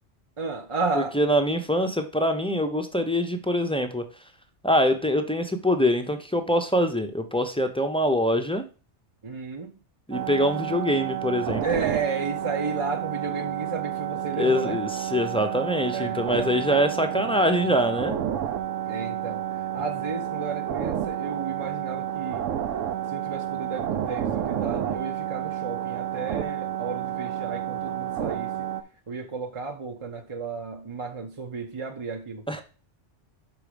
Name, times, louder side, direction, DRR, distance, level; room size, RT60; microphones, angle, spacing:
voice 1, 0.4-1.2 9.2-9.7 11.6-14.8 15.9-16.8 18.9-19.4 19.7-22.4 23.1-28.7 29.1-32.4, right 4 dB, 35° right, 0.6 m, -33 dB
voice 2, 0.9-4.0 4.6-8.6 10.1-11.6 14.3-18.2 32.5-32.6, equal, 5° left, 0.5 m, -24 dB
sound 1, 10.1-28.8, right 11 dB, 90° right, 1.0 m, -30 dB
6.1 x 4.7 x 5.1 m
omnidirectional pair, 1.2 m